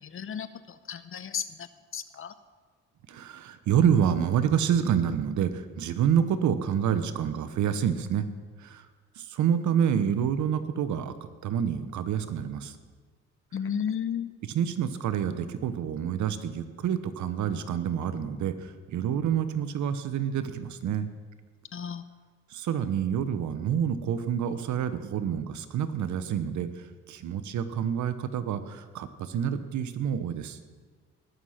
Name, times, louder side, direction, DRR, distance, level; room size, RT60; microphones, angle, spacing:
voice 1, 0.1-0.5 0.9-1.4 1.9-2.3 13.5-14.3 21.7-22.0, left 8 dB, 45° left, 13 dB, 0.8 m, -32 dB
voice 2, 3.1-8.3 8.6-8.9 9.2-11.1 11.4-12.8 14.4-21.1 22.5-30.6, right 8 dB, 70° right, 11 dB, 1.0 m, -28 dB
19.5 x 6.5 x 5.7 m, 1.5 s
cardioid pair, 90°, 30 cm